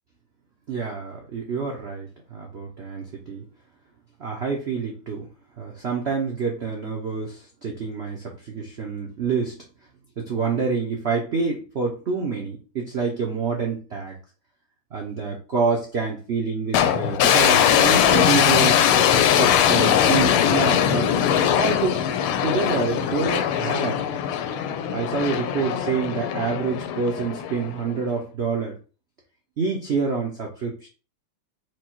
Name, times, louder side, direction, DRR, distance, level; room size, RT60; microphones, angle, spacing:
voice 1, 0.7-3.5 4.2-5.3 5.6-9.6 10.2-14.2 14.9-18.8 19.1-21.1 21.6-22.1 22.4-24.0 24.9-28.8 29.6-30.9, right 5 dB, 80° right, -1 dB, 0.5 m, -27 dB
sound 1, 16.7-28.0, left 9 dB, 90° left, 1.4 m, -21 dB
4.8 x 2.2 x 4.4 m, 0.35 s
omnidirectional pair, 2.3 m